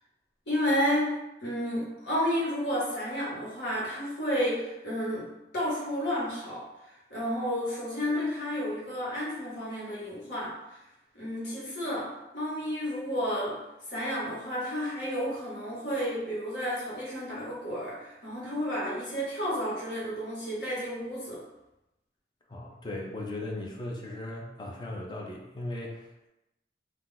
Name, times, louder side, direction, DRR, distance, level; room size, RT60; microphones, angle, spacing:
voice 1, 0.5-1.1 1.4-5.3 5.5-10.5 11.1-13.6 13.9-21.4, equal, 65° left, -7 dB, 1.2 m, -31 dB
voice 2, 22.5-26.3, left 1 dB, 25° left, -1 dB, 0.4 m, -38 dB
2.3 x 2.2 x 3.8 m, 0.93 s
head